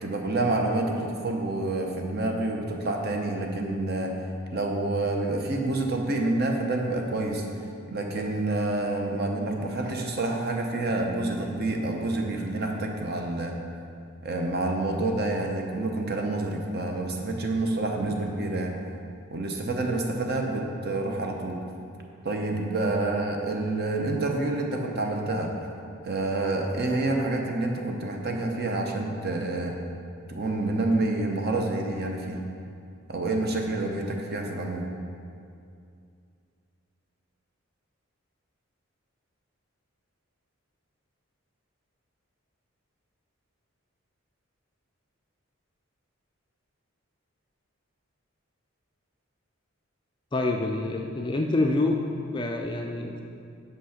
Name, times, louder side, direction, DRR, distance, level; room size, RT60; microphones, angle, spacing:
voice 1, 0.0-4.1 4.5-7.4 7.9-13.5 14.2-18.8 19.3-21.6 22.2-25.5 26.0-29.8 30.3-32.4 33.1-34.9, right 2 dB, 45° right, 2 dB, 0.8 m, -28 dB
voice 2, 50.3-52.0 52.3-53.2, left 2 dB, 20° left, 2 dB, 0.4 m, -26 dB
6.1 x 5.6 x 5.7 m, 2.4 s
head